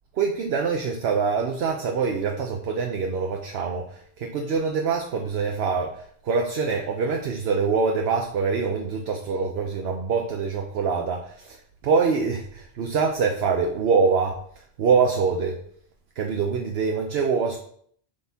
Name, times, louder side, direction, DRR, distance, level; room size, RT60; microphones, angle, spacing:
voice 1, 0.2-15.6 16.2-17.6, right 5 dB, 70° right, 3 dB, 0.9 m, -25 dB
8.5 x 4.1 x 3.5 m, 0.62 s
omnidirectional pair, 1.1 m